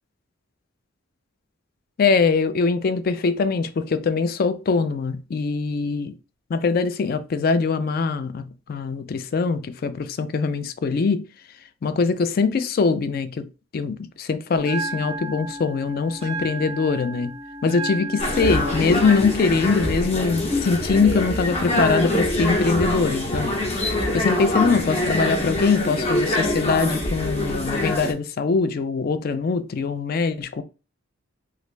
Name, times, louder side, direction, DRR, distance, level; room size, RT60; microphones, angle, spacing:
voice 1, 2.0-6.1 6.5-11.3 11.8-13.5 13.7-17.3 17.6-23.5 24.1-30.6, left 4 dB, 45° left, 0.3 m, -22 dB
Bell, 14.6-22.6, right 2 dB, 30° right, 0.4 m, -35 dB
sound 1, 18.2-28.1, left 1 dB, 30° left, 0.7 m, -24 dB
3.1 x 2.4 x 3.2 m
head